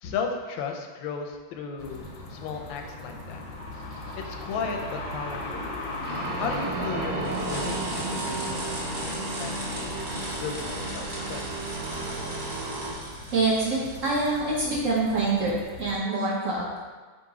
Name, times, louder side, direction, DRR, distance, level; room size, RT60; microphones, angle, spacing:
voice 1, 0.0-3.4 4.2-5.7 6.3-10.0 10.4-11.5, left 5 dB, 85° left, 3 dB, 1.3 m, -35 dB
sound 1, 1.8-16.0, left 2 dB, 65° left, 0.8 m, -38 dB
sound 2, 6.0-12.9, right 3 dB, 85° right, 0.7 m, -33 dB
sound 3, 7.2-14.5, right 1 dB, 30° right, 1.1 m, -38 dB
voice 2, 13.3-16.8, right 3 dB, 60° right, -6 dB, 0.9 m, -26 dB
3.9 x 2.5 x 4.7 m, 1.4 s
omnidirectional pair, 2.0 m